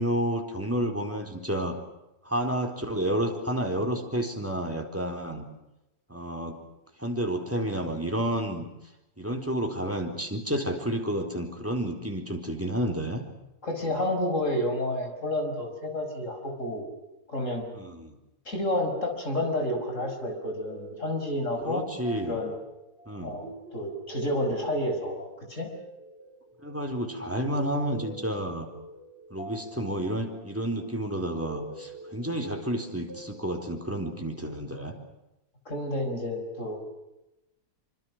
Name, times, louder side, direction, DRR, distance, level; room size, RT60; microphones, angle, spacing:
voice 1, 0.0-1.8 2.2-5.4 6.1-6.6 7.0-8.6 9.2-13.2 13.9-14.0 17.7-18.2 21.6-22.4 23.1-23.4 26.6-28.7 29.3-34.9, right 1 dB, 10° right, 4 dB, 4.0 m, -30 dB
voice 2, 13.6-16.9 17.3-17.7 18.5-21.8 22.2-22.6 23.2-25.7 35.7-36.8, left 1 dB, 45° left, 4 dB, 6.0 m, -30 dB
sound 1, 19.8-34.5, right 1 dB, 35° right, 6.5 m, -45 dB
26.5 x 26.0 x 6.3 m, 0.92 s
omnidirectional pair, 1.8 m